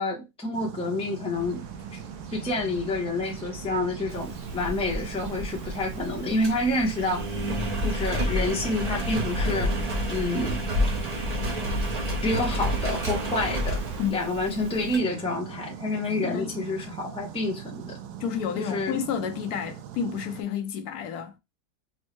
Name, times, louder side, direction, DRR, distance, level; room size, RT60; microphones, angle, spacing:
voice 1, 0.0-1.6 1.9-2.0 2.3-7.3 7.8-9.8 10.1-10.6 12.2-13.8 14.1-18.0 18.6-19.0, left 2 dB, 10° left, 0.4 m, -28 dB
sound 1, 0.5-20.4, right 10 dB, 85° right, 1.1 m, -41 dB
sound 2, 1.3-14.1, right 3 dB, 60° right, 1.0 m, -42 dB
Engine, 4.1-15.0, equal, 40° right, 0.5 m, -30 dB
voice 2, 16.2-16.6 18.2-21.4, left 8 dB, 75° left, 1.1 m, -30 dB
4.4 x 2.1 x 3.0 m
omnidirectional pair, 1.7 m